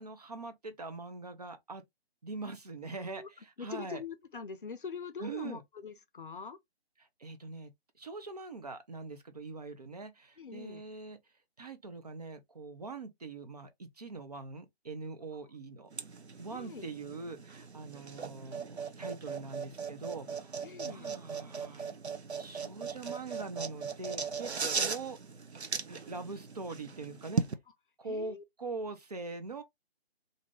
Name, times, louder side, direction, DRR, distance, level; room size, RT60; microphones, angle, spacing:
voice 1, 0.0-1.8 2.2-4.0 5.2-5.6 7.2-7.7 8.0-11.2 11.6-15.9 16.4-21.9 22.4-24.5 24.8-25.2 25.9-27.5 28.0-29.6, right 3 dB, 40° right, 0.5 m, -43 dB
voice 2, 3.0-3.3 3.6-6.6 10.4-10.8 16.5-16.8 20.6-21.2 24.6-24.9 28.0-28.4, left 5 dB, 55° left, 0.5 m, -43 dB
sound 1, 15.9-27.5, right 5 dB, 85° right, 0.6 m, -38 dB
2.6 x 2.5 x 3.0 m
figure-of-eight pair, 145°, 32 cm